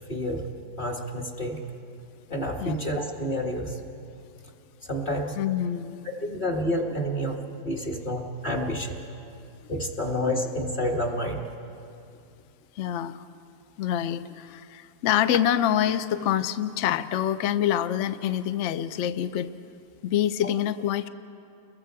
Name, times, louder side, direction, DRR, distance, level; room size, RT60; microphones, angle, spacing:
voice 1, 0.1-0.5 0.8-1.6 2.3-3.8 4.8-5.4 6.2-9.0 9.7-11.4, equal, 30° left, 0 dB, 1.6 m, -29 dB
voice 2, 5.4-6.0 12.8-13.2 13.8-19.5 20.0-21.1, left 10 dB, 65° left, 13 dB, 0.8 m, -26 dB
29.5 x 22.0 x 4.7 m, 2.6 s
omnidirectional pair, 1.8 m